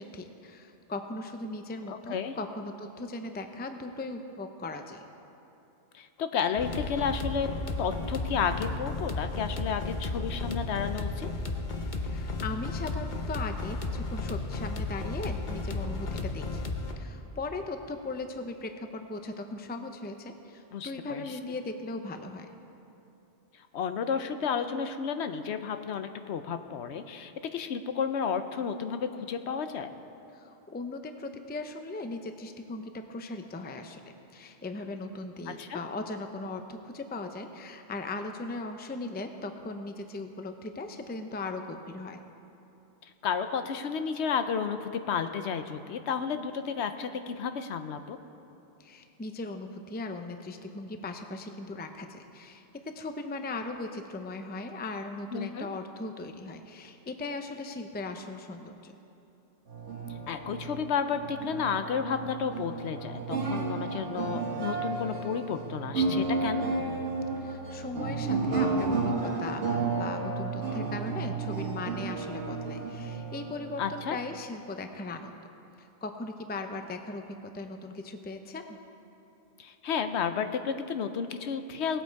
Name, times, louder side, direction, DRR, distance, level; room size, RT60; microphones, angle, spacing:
voice 1, 0.0-5.0 12.0-16.6 17.0-22.6 30.3-42.2 48.8-59.0 67.4-75.4 75.8-78.8, left 2 dB, 15° left, 6 dB, 0.4 m, -38 dB
voice 2, 1.9-2.3 5.9-7.5 7.8-11.3 20.7-21.2 23.7-29.9 35.5-35.8 43.2-48.2 55.3-55.7 60.3-66.6 73.8-74.2 79.6-82.0, left 6 dB, 75° left, 9 dB, 0.9 m, -32 dB
sound 1, 6.6-16.9, left 3 dB, 45° left, 0.9 m, -34 dB
sound 2, 59.7-74.4, right 4 dB, 80° right, 1.6 m, -32 dB
19.0 x 8.0 x 4.6 m, 2.9 s
omnidirectional pair, 1.2 m